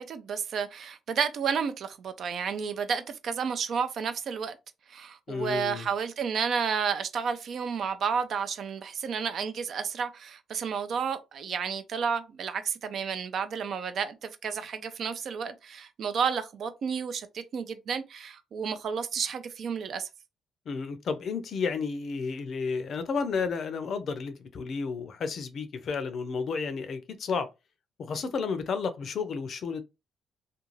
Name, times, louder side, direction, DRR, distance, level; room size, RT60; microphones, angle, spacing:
voice 1, 0.0-4.6 4.9-20.1, right 6 dB, 60° right, 0.4 m, -31 dB
voice 2, 5.3-5.9 20.7-27.5 28.0-29.8, left 5 dB, 60° left, 0.5 m, -32 dB
2.5 x 2.2 x 3.1 m
cardioid pair, 90°, 0 cm